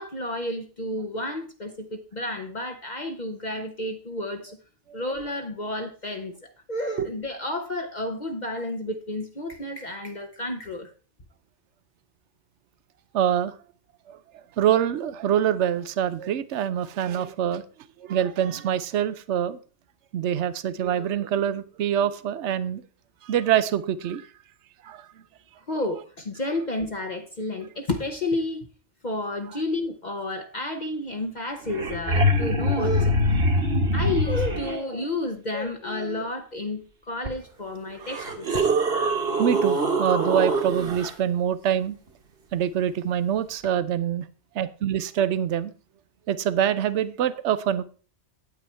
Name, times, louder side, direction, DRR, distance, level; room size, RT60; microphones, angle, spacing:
voice 1, 0.0-4.6 4.9-10.9 25.7-28.7 29.0-33.4 33.9-38.7, left 1 dB, 40° left, 1.0 m, -31 dB
voice 2, 13.1-13.5 14.1-14.2 14.6-17.6 18.0-19.6 20.1-22.8 23.2-24.3 24.8-25.0 37.9-38.0 39.4-42.0 42.5-44.3 44.5-45.7 46.3-47.8, right 9 dB, 80° right, 1.0 m, -25 dB
sound 1, 31.4-31.5 31.6-34.8 37.2-37.3 38.0-41.1 43.6-43.7, equal, 55° right, 1.7 m, -24 dB
9.1 x 8.8 x 4.4 m
omnidirectional pair, 1.2 m